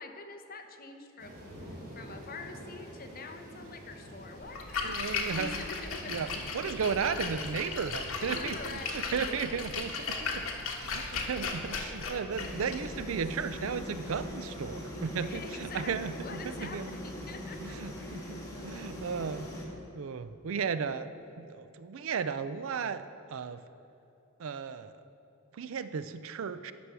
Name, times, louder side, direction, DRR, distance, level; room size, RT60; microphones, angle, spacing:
voice 1, 0.0-6.2 8.2-9.6 10.9-11.3 15.2-18.1 18.3-18.9 21.4-21.7, left 3 dB, 45° left, 5 dB, 1.0 m, -46 dB
sound 1, 1.2-10.5, equal, 50° right, 2.8 m, -48 dB
Splash splatter, 4.4-14.4, left 4 dB, 70° left, 1.3 m, -37 dB
voice 2, 4.8-5.6 6.0-16.9 17.6-19.7 19.9-23.0 23.3-23.6 24.4-24.9 25.5-26.7, right 6 dB, 65° right, 13 dB, 0.4 m, -35 dB
sound 2, 12.3-19.6, equal, 15° left, 1.8 m, -41 dB
11.0 x 6.2 x 6.8 m, 3.0 s
head